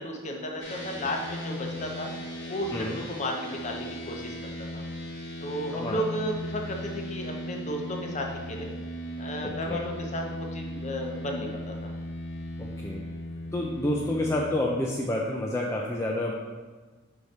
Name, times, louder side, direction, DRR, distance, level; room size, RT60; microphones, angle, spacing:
voice 1, 0.0-2.1 2.5-4.8 5.4-8.7 9.2-11.9, equal, 35° left, 1 dB, 0.8 m, -34 dB
sound 1, 0.6-14.4, equal, 65° left, 1.3 m, -37 dB
voice 2, 2.7-3.0 5.7-6.0 9.4-9.8 12.6-13.0 13.5-16.3, left 1 dB, 15° left, -3 dB, 0.4 m, -29 dB
5.0 x 4.8 x 4.1 m, 1.3 s
head